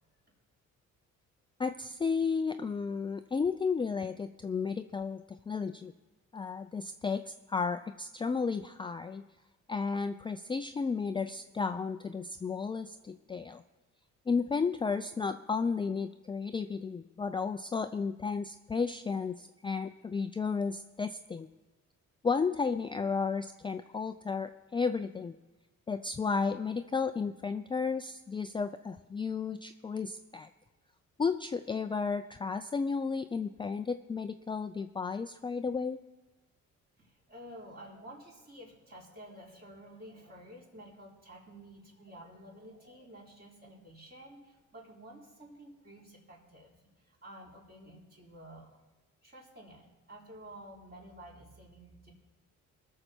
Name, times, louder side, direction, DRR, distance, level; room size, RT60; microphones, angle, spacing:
voice 1, 1.6-5.9 6.3-9.2 9.7-13.6 14.3-21.5 22.2-25.3 25.9-30.5 31.2-36.0, left 5 dB, 15° left, 9 dB, 0.4 m, -33 dB
voice 2, 37.0-46.8 47.1-48.8 49.2-52.1, right 1 dB, 35° right, -3 dB, 3.8 m, -51 dB
19.5 x 6.7 x 4.4 m, 1.1 s
cardioid pair, 90°, 30 cm